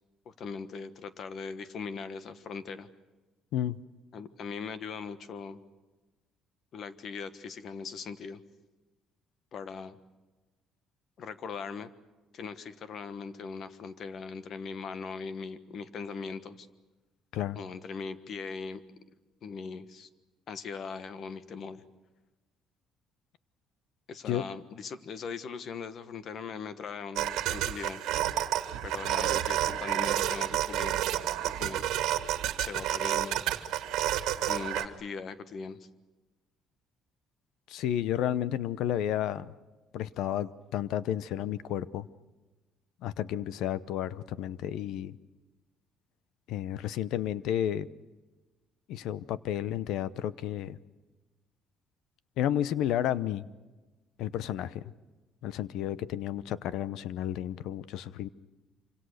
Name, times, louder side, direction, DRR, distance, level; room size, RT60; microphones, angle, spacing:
voice 1, 0.2-2.9 4.1-5.6 6.7-8.4 9.5-10.0 11.2-11.9 12.3-16.7 17.5-18.8 19.4-20.1 20.5-21.8 24.1-28.0 28.8-31.0 31.4-31.9 32.6-33.4 34.4-35.8, left 5 dB, 45° left, 12 dB, 1.4 m, -40 dB
sound 1, 27.2-34.9, right 13 dB, 85° right, 1.7 m, -30 dB
voice 2, 37.7-39.5 39.9-42.1 43.0-45.2 46.5-47.9 48.9-50.8 52.4-53.5 54.2-54.8 55.4-58.3, left 11 dB, 75° left, 17 dB, 0.8 m, -32 dB
26.5 x 25.5 x 6.6 m, 1.2 s
cardioid pair, 150°, 0 cm